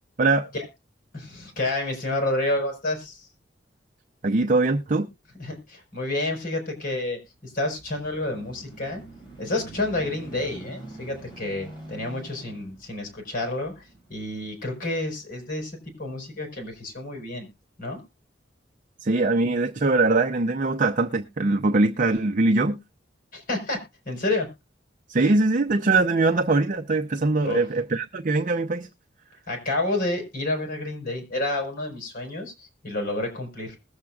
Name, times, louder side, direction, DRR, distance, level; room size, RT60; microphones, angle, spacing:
voice 1, 0.2-0.5 4.2-5.1 19.0-22.8 25.1-28.9, right 3 dB, 45° right, 0.6 m, -22 dB
voice 2, 1.1-3.3 5.4-9.0 9.4-17.5 17.8-18.0 23.3-24.5 27.4-27.6 29.5-33.8, left 2 dB, 50° left, 5.1 m, -29 dB
sound 1, 7.2-16.0 16.6-16.7, right 2 dB, 30° left, 5.6 m, -46 dB
20.5 x 7.3 x 2.4 m
head